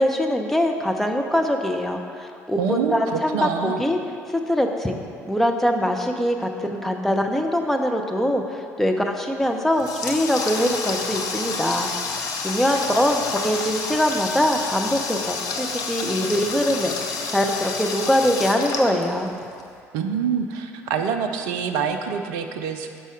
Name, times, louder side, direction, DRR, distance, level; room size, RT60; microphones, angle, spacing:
voice 1, 0.0-4.0 4.3-5.0 5.3-19.3, equal, 5° left, 3 dB, 0.6 m, -23 dB
voice 2, 2.6-3.8 19.9-23.0, right 6 dB, 60° right, 6 dB, 0.5 m, -26 dB
Water tap faucet, 9.4-19.6, left 4 dB, 50° left, 0.7 m, -29 dB
6.2 x 5.5 x 4.6 m, 2.3 s
figure-of-eight pair, 55°, 8 cm